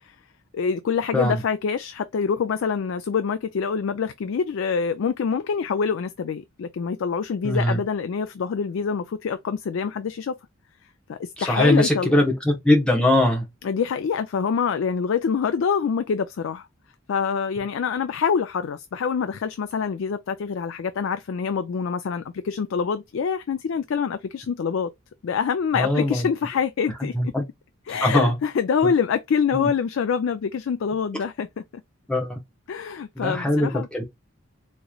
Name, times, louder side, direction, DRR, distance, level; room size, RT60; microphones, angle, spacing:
voice 1, 0.5-10.4 11.1-12.2 13.6-16.7 17.1-24.9 25.2-27.1 27.9-31.6 32.7-33.9, left 6 dB, 70° left, 0.3 m, -25 dB
voice 2, 7.4-7.8 11.4-13.4 25.7-26.3 27.1-27.4 27.9-28.4 29.5-29.7 32.1-32.4 33.2-34.0, left 1 dB, 5° left, 0.9 m, -21 dB
3.8 x 3.0 x 2.3 m
head